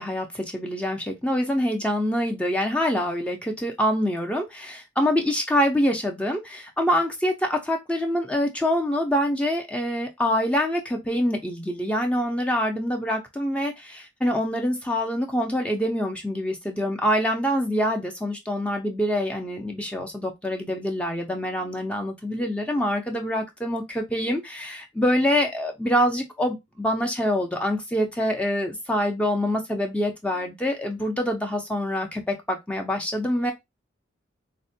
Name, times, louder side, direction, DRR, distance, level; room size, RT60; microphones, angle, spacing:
voice 1, 0.0-33.5, equal, 5° left, 0.4 m, -25 dB
4.2 x 2.1 x 2.6 m
head